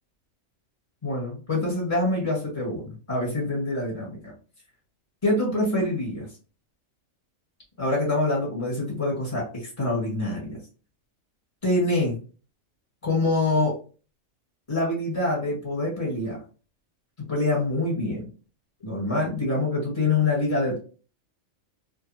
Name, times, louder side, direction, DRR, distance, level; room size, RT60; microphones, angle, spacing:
voice 1, 1.0-4.3 5.2-6.3 7.8-10.6 11.6-12.2 13.0-13.8 14.7-16.4 17.3-18.3 18.8-20.8, left 2 dB, 20° left, -2 dB, 1.5 m, -25 dB
2.8 x 2.5 x 2.6 m, 0.34 s
omnidirectional pair, 1.4 m